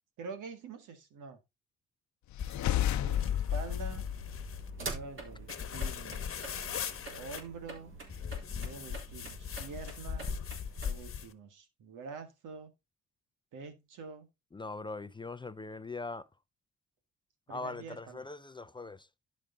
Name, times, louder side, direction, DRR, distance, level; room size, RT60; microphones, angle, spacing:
voice 1, 0.2-1.4 2.9-4.1 4.8-6.5 7.2-7.9 8.5-10.3 10.8-12.7 13.5-14.3 17.5-18.3, right 5 dB, 85° right, 1.9 m, -46 dB
sound 1, 2.3-5.1, left 11 dB, 70° left, 0.7 m, -32 dB
sound 2, 2.4-4.7 5.5-7.4 8.1-11.3, left 8 dB, 45° left, 1.2 m, -40 dB
Driving - turn signals clicking, 3.9-11.0, right 2 dB, 40° right, 3.8 m, -45 dB
voice 2, 14.5-16.3 17.5-19.1, left 3 dB, 15° left, 0.4 m, -41 dB
11.5 x 5.2 x 3.8 m
cardioid pair, 90°, 30 cm